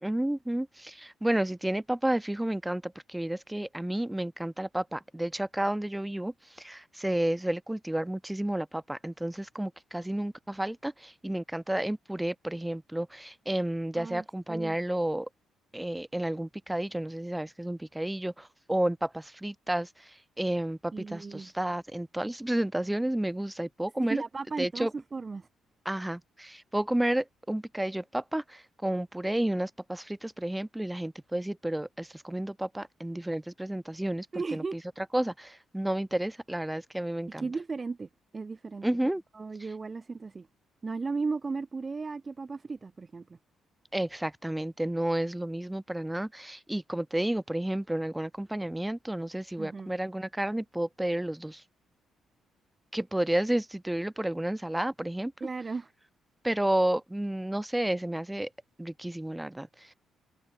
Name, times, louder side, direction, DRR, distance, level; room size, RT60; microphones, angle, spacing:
voice 1, 0.0-15.3 15.7-24.2 24.6-24.9 25.8-34.3 34.5-34.8 35.1-37.5 38.8-39.2 43.9-51.6 52.9-55.3 56.4-58.5 58.8-59.9, right 1 dB, 5° right, 1.2 m, -31 dB
voice 2, 13.9-14.8 20.9-21.5 24.0-25.5 34.3-34.8 37.4-38.1 38.3-38.9 39.3-40.5 40.8-43.4 49.6-49.9 55.4-55.9, right 4 dB, 30° right, 2.0 m, -35 dB
cardioid pair, 90°, 0 cm